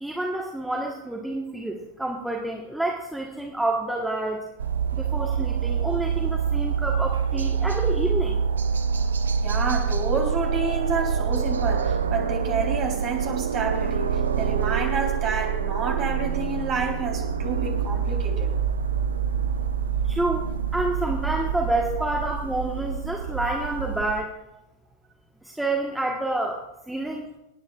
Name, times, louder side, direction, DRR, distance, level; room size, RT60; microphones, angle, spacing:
voice 1, 0.0-4.4 4.9-8.4 20.1-20.4 20.7-24.3 25.4-27.3, right 2 dB, 5° right, 0 dB, 1.4 m, -28 dB
sound 1, 4.6-24.2, right 6 dB, 70° right, 0.6 m, -26 dB
voice 2, 9.4-18.5, right 4 dB, 35° right, 1 dB, 3.8 m, -29 dB
28.5 x 9.5 x 2.5 m, 0.91 s
figure-of-eight pair, 90°, 0 cm